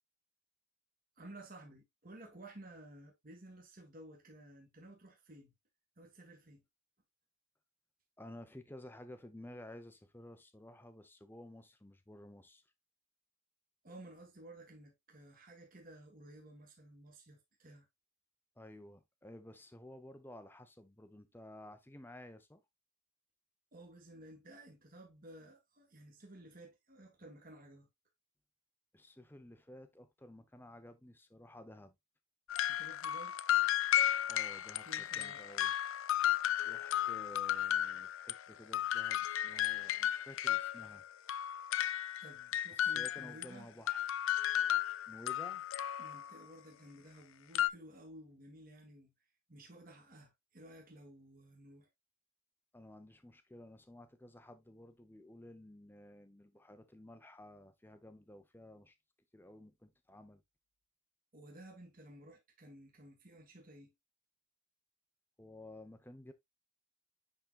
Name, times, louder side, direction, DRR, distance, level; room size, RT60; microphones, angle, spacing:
voice 1, 1.2-5.5 6.0-6.6 13.8-17.9 23.7-27.9 32.7-33.4 34.8-35.4 42.2-43.7 46.0-49.1 49.5-51.9 61.3-63.9, right 1 dB, 40° right, 1.7 m, -55 dB
voice 2, 8.2-12.6 18.6-22.6 28.9-31.9 34.3-35.7 36.6-41.0 42.7-44.0 45.1-45.7 52.7-59.0 59.3-60.4 65.4-66.3, left 1 dB, 10° left, 0.7 m, -53 dB
sound 1, 32.5-38.4 38.7-43.5 43.9-46.4 47.5-47.7, left 12 dB, 65° left, 0.4 m, -34 dB
10.5 x 3.8 x 2.4 m
head